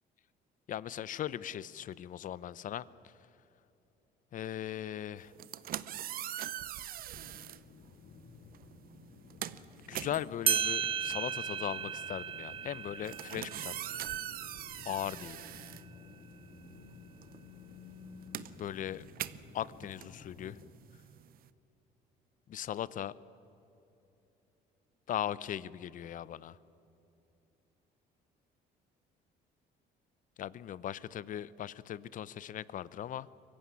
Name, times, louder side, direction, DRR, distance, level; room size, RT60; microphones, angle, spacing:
voice 1, 0.7-2.9 4.3-5.3 9.9-13.7 14.8-15.4 18.6-19.0 19.5-20.6 22.5-23.1 25.1-26.6 30.4-33.3, left 11 dB, 50° left, 19 dB, 0.7 m, -38 dB
sound 1, 5.3-7.6 8.5-8.7 9.0-16.6 16.8-21.5, right 12 dB, 60° right, 0.8 m, -42 dB
sound 2, 7.1-20.7, left 4 dB, 70° left, 1.9 m, -54 dB
sound 3, 10.1-10.2 10.5-15.5, right 8 dB, 35° right, 0.5 m, -36 dB
23.5 x 15.5 x 9.7 m, 2.8 s
cardioid pair, 110°, 17 cm